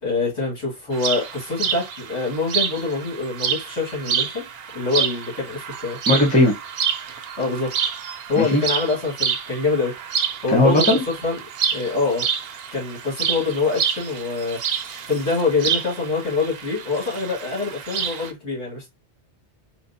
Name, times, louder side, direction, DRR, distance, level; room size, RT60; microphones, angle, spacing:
voice 1, 0.0-4.5 4.7-6.0 7.4-7.7 8.3-9.9 10.4-11.4 11.7-12.3 12.7-14.6 15.1-18.9, left 3 dB, 70° left, 2.4 m, -25 dB
sound 1, 0.9-18.3, right 7 dB, 65° right, 0.7 m, -28 dB
voice 2, 6.1-6.5 8.4-8.6 10.5-11.0, left 1 dB, 5° left, 0.9 m, -17 dB
4.4 x 2.1 x 2.7 m
omnidirectional pair, 1.2 m